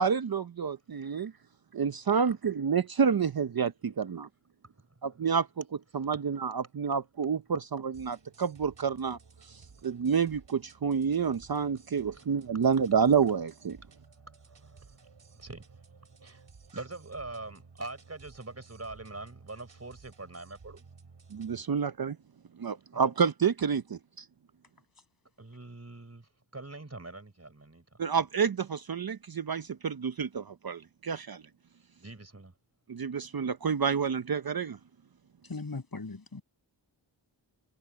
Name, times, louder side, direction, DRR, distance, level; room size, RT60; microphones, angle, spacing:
voice 1, 0.0-1.3 1.7-4.3 5.0-9.2 9.4-13.8 21.3-22.2 22.6-24.3 28.0-31.4 32.9-34.8, right 6 dB, 50° right, 0.8 m, -29 dB
sound 1, 7.9-21.6, right 4 dB, 70° right, 4.7 m, -55 dB
voice 2, 14.4-15.8 16.2-16.5 16.7-20.9 22.9-23.1 25.4-27.8 28.1-28.3 32.0-32.5, right 2 dB, 35° right, 4.4 m, -44 dB
voice 3, 35.4-36.4, left 3 dB, 50° left, 7.2 m, -39 dB
wide cardioid pair, 65°, 45 cm